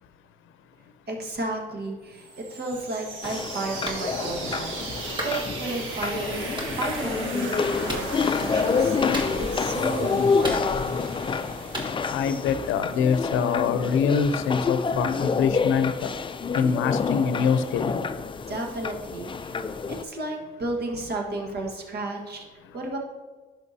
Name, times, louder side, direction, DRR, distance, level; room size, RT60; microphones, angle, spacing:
voice 1, 1.1-11.0 11.7-11.9 18.5-19.6 19.9-22.4 22.7-23.0, right 2 dB, 55° right, 1 dB, 1.5 m, -33 dB
sound 1, 2.1-13.8, right 3 dB, 85° right, 1.4 m, -37 dB
sound 2, 3.2-20.0, left 5 dB, 25° left, 0.4 m, -28 dB
Clapping, 3.9-4.1 5.2-5.4 6.6-6.7 7.9-8.1 9.1-9.6 10.4-11.0 11.7-11.9, right 1 dB, 25° right, 1.7 m, -33 dB
voice 2, 12.1-16.1 16.5-18.0, left 6 dB, 85° left, 11 dB, 0.6 m, -24 dB
11.0 x 5.8 x 2.8 m, 1.3 s
cardioid pair, 90°, 20 cm